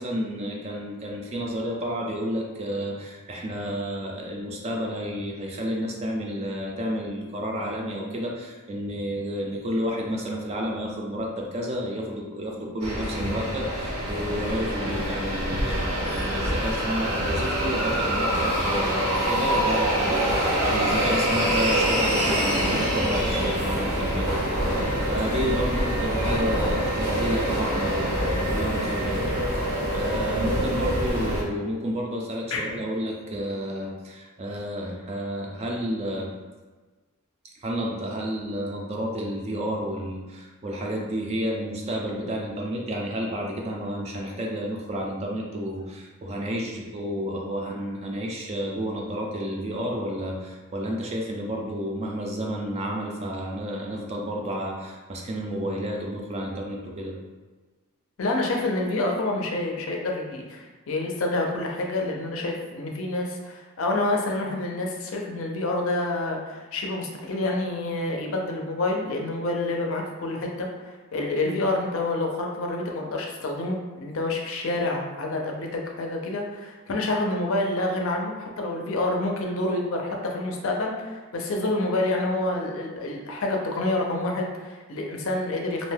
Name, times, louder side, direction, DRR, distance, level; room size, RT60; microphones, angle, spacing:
voice 1, 0.0-36.3 37.6-57.1, equal, 30° right, -1 dB, 0.3 m, -31 dB
sound 1, 12.8-31.4, right 1 dB, 80° right, 0.8 m, -25 dB
voice 2, 58.2-85.9, left 2 dB, 65° left, 1 dB, 0.5 m, -28 dB
2.6 x 2.1 x 3.2 m, 1.3 s
head